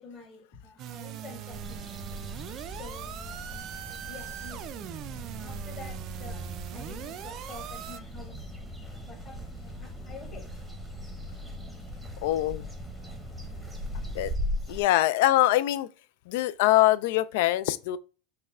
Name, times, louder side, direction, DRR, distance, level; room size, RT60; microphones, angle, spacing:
voice 1, 0.0-1.9 2.7-4.8 5.4-8.5 9.1-10.5, left 4 dB, 30° left, 1.5 m, -48 dB
sound 1, 0.8-8.0, right 12 dB, 40° right, 0.3 m, -41 dB
sound 2, 1.5-14.8, equal, ahead, 0.8 m, -39 dB
voice 2, 12.2-12.7 14.1-14.3 14.7-15.9 16.3-18.0, left 15 dB, 65° left, 0.3 m, -23 dB
5.4 x 2.2 x 3.5 m
supercardioid pair, 135°, 0 cm